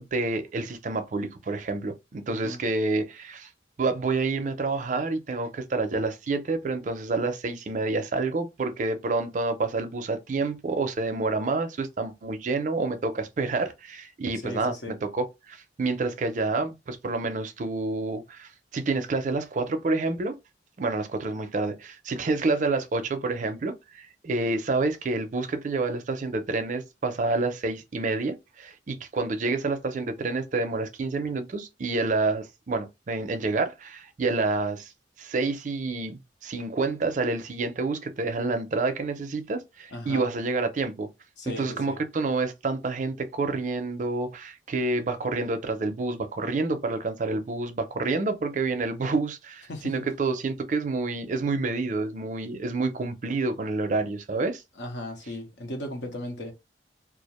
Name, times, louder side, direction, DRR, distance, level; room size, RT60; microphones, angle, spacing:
voice 1, 0.0-3.5 3.8-20.4 20.8-34.9 35.2-41.1 41.5-54.6, right 3 dB, 45° right, 0.4 m, -28 dB
voice 2, 2.3-2.6 14.4-14.9 39.9-40.2 41.4-42.0 49.7-49.9 54.8-56.5, left 1 dB, 75° left, 0.8 m, -36 dB
2.4 x 2.0 x 2.9 m
head